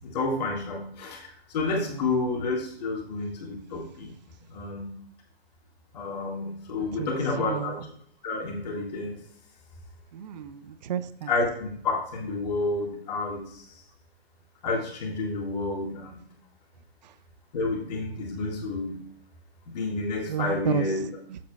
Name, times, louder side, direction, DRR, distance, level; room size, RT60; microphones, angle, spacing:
voice 1, 0.0-4.1 4.5-4.9 5.9-7.8 8.2-9.2 11.3-13.6 14.6-16.2 17.5-19.0 19.7-21.1, left 3 dB, 40° left, 0 dB, 1.8 m, -30 dB
voice 2, 6.9-7.8 10.1-11.3 17.0-17.1 20.3-21.4, right 9 dB, 45° right, 14 dB, 0.5 m, -32 dB
11.0 x 7.6 x 2.3 m, 0.62 s
figure-of-eight pair, 130°, 32 cm